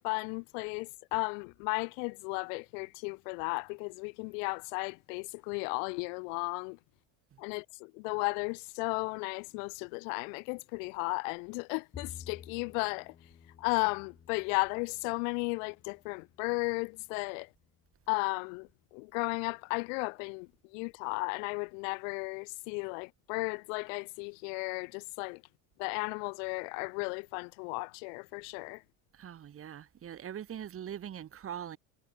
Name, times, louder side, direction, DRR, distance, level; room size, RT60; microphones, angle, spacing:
voice 1, 0.0-6.8 7.4-13.1 13.6-17.5 18.1-25.4 25.8-28.8, left 37 dB, 80° left, 0.5 m, -35 dB
Bowed string instrument, 11.9-18.3, left 7 dB, 20° left, 0.8 m, -54 dB
voice 2, 29.1-31.8, right 10 dB, 35° right, 1.8 m, -42 dB
supercardioid pair, 110°, 38 cm